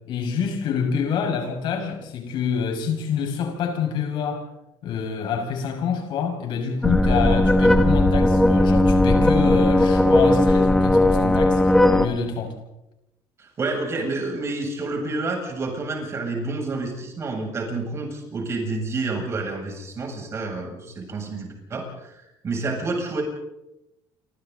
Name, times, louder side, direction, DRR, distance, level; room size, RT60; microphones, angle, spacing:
voice 1, 0.1-4.4 4.8-12.6, left 6 dB, 60° left, 3 dB, 6.1 m, -27 dB
sound 1, 6.8-12.1, left 1 dB, 5° left, 1.5 m, -17 dB
voice 2, 13.4-23.2, right 3 dB, 30° right, 1 dB, 7.8 m, -29 dB
29.5 x 26.0 x 4.1 m, 0.90 s
cardioid pair, 140°, 9 cm